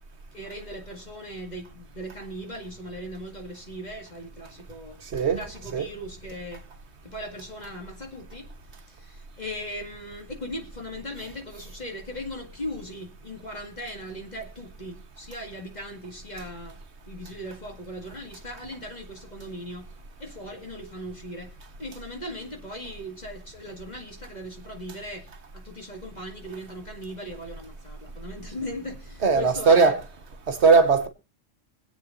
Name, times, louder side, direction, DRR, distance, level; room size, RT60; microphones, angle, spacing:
voice 1, 0.3-6.7 7.0-8.5 8.9-16.8 17.1-19.9 20.2-25.3 25.5-29.9, equal, 35° left, 2.2 m, -38 dB
voice 2, 5.1-5.4 5.7-5.8 29.2-30.0 30.5-31.1, right 4 dB, 60° right, 1.5 m, -19 dB
25.0 x 8.5 x 2.6 m
omnidirectional pair, 1.3 m